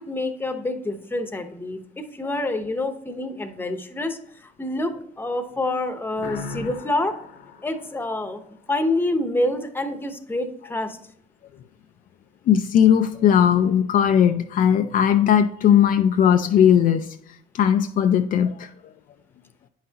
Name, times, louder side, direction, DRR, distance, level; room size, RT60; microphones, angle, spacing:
voice 1, 0.0-7.1 7.6-8.4 8.7-11.0, left 2 dB, 10° left, 7 dB, 0.9 m, -27 dB
sound 1, 6.2-8.8, left 3 dB, 85° left, 1.2 m, -38 dB
voice 2, 12.5-18.9, left 9 dB, 55° left, 7 dB, 0.4 m, -18 dB
9.3 x 5.6 x 2.9 m, 0.71 s
cardioid pair, 100°, 17 cm